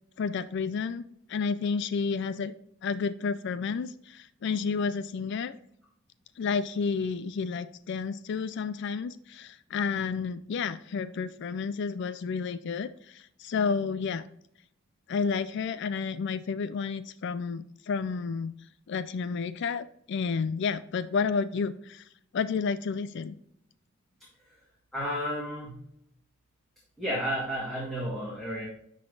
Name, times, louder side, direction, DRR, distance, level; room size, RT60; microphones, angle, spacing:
voice 1, 0.2-2.5 2.8-5.5 6.4-14.2 15.1-18.5 18.9-22.0 22.3-23.4, left 5 dB, 60° left, 14 dB, 0.4 m, -31 dB
voice 2, 24.9-25.8 27.0-28.6, equal, ahead, -6 dB, 1.8 m, -32 dB
10.5 x 3.9 x 3.9 m, 0.72 s
head